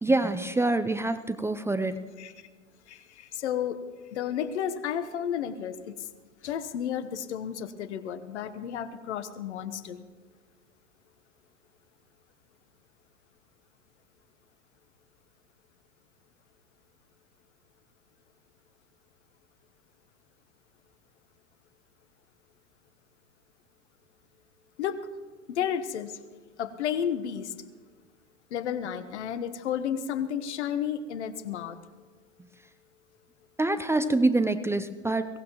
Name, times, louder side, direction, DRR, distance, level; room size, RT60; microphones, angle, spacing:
voice 1, 0.0-2.0 33.6-35.3, right 2 dB, 5° right, 11 dB, 0.6 m, -25 dB
voice 2, 2.9-3.8 4.1-6.1 6.4-10.0 24.8-25.1 25.5-26.2 26.6-27.5 28.5-31.8, left 9 dB, 70° left, 12 dB, 1.2 m, -32 dB
22.5 x 17.5 x 3.0 m, 1.4 s
figure-of-eight pair, 85°, 36 cm